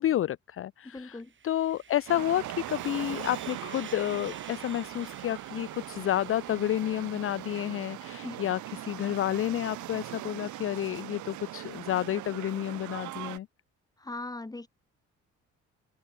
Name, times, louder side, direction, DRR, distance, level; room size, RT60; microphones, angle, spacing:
voice 1, 0.0-13.5, left 12 dB, 45° left, 0.5 m, -30 dB
voice 2, 0.8-1.3 8.2-8.4 14.0-14.7, left 2 dB, 10° left, 1.6 m, -39 dB
Sawing, 1.2-8.6, right 6 dB, 40° right, 2.9 m, -51 dB
sound 1, 2.1-13.4, right 15 dB, 75° right, 0.9 m, -40 dB
open air
cardioid pair, 90°, 30 cm